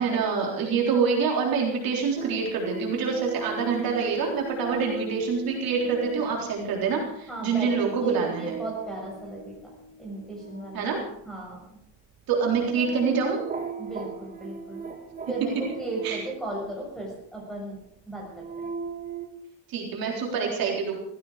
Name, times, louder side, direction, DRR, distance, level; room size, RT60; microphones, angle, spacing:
voice 1, 0.0-8.5 10.7-11.0 12.3-13.4 16.0-16.2 19.7-20.9, right 5 dB, 55° right, -1 dB, 3.9 m, -26 dB
sound 1, 2.2-17.3 17.9-19.3, right 4 dB, 20° right, 1.5 m, -39 dB
voice 2, 4.6-5.0 7.3-9.6 10.0-10.8 11.3-11.6 13.8-14.8 15.3-17.8 18.1-18.5 20.5-20.9, right 2 dB, ahead, -2 dB, 6.6 m, -36 dB
17.5 x 15.0 x 5.0 m, 0.74 s
cardioid pair, 170°, 43 cm